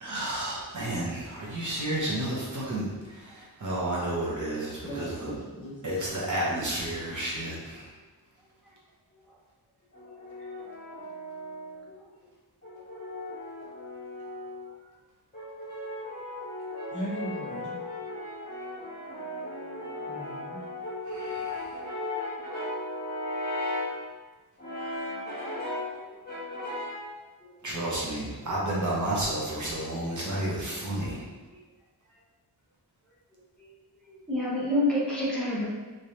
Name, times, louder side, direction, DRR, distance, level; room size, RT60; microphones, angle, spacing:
voice 1, 0.0-5.3 5.8-7.9 21.1-21.7 27.6-31.2, right 1 dB, 45° right, -5 dB, 0.9 m, -31 dB
voice 2, 4.8-6.3 16.9-17.7 20.1-20.6, equal, 45° left, -7 dB, 1.1 m, -38 dB
Brass instrument, 9.9-11.9 12.6-14.7 15.3-24.0 24.6-25.9 26.3-27.1, left 1 dB, 25° left, 1.2 m, -36 dB
voice 3, 34.0-35.7, left 1 dB, ahead, -8 dB, 1.0 m, -29 dB
3.7 x 3.2 x 2.8 m, 1.2 s
wide cardioid pair, 180°, 41 cm